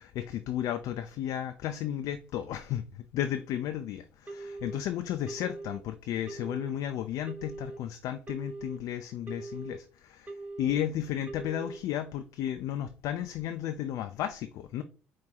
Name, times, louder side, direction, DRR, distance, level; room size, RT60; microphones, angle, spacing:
voice 1, 0.0-2.8 3.1-14.8, left 11 dB, 70° left, 0.4 m, -33 dB
Telephone, 4.3-4.8 5.3-5.8 6.3-6.8 7.3-7.8 8.3-8.8 9.3-9.8 10.3-10.8 11.3-11.8, right 2 dB, 25° right, 1.0 m, -41 dB
4.2 x 2.6 x 3.8 m
hypercardioid pair, 55°, 6 cm